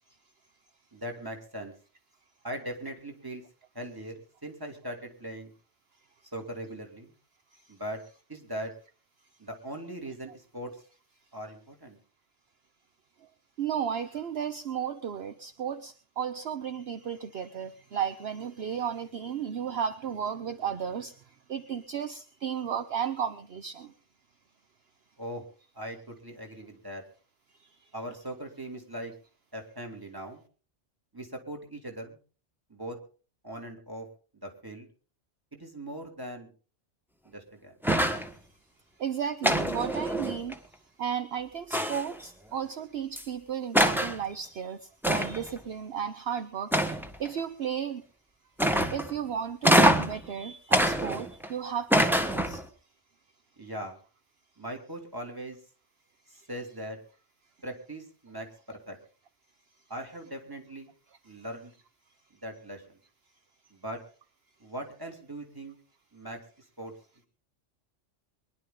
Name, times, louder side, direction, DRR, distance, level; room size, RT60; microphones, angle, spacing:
voice 1, 0.9-1.7 2.4-3.4 3.7-5.5 6.3-7.1 7.7-8.0 8.3-8.7 9.4-10.7 11.3-12.0 25.2-25.4 25.7-27.0 27.9-29.1 29.5-30.4 31.1-32.2 32.7-33.0 33.4-34.1 34.3-34.9 35.5-36.5 37.2-37.7 53.6-54.0 54.6-55.6 56.3-57.0 57.6-59.0 59.9-60.9 61.2-61.7 62.4-63.0 63.7-64.0 64.6-65.8 66.1-66.4 66.8-66.9, right 1 dB, 20° right, 2 dB, 3.1 m, -40 dB
voice 2, 13.6-23.9 27.6-27.9 39.0-48.0 48.9-52.6 61.3-61.4, right 8 dB, 60° right, 11 dB, 1.0 m, -34 dB
sound 1, 37.8-38.3 39.4-40.5 41.7-42.2 43.2-43.3 43.7-44.2 45.0-45.5 46.7-47.3 48.6-49.1 49.6-50.2 50.7-51.5 51.9-52.7, equal, ahead, 1.4 m, -24 dB
23.0 x 11.5 x 3.8 m, 0.39 s
omnidirectional pair, 1.2 m